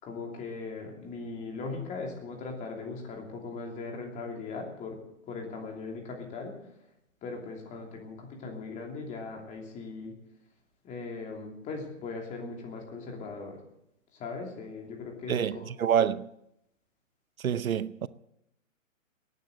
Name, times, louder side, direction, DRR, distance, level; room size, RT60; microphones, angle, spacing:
voice 1, 0.0-5.0 5.3-6.5 7.2-10.1 10.8-13.6 14.1-15.7, left 4 dB, 15° left, 2.9 m, -39 dB
voice 2, 15.3-16.3 17.4-18.1, right 9 dB, 85° right, 0.8 m, -27 dB
18.0 x 9.5 x 7.8 m
hypercardioid pair, 145°, 41 cm